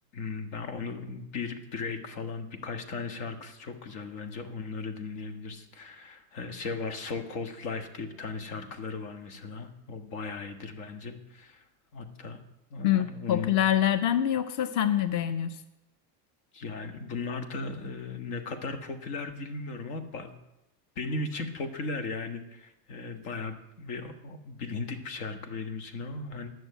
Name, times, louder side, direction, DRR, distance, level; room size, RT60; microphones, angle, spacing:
voice 1, 0.1-11.6 11.9-12.4 12.7-13.7 16.5-20.3 20.9-26.5, left 4 dB, 80° left, 7 dB, 1.7 m, -37 dB
voice 2, 12.8-15.6, left 11 dB, 40° left, 12 dB, 0.6 m, -25 dB
11.0 x 6.4 x 9.2 m, 0.92 s
cardioid pair, 145°, 45 cm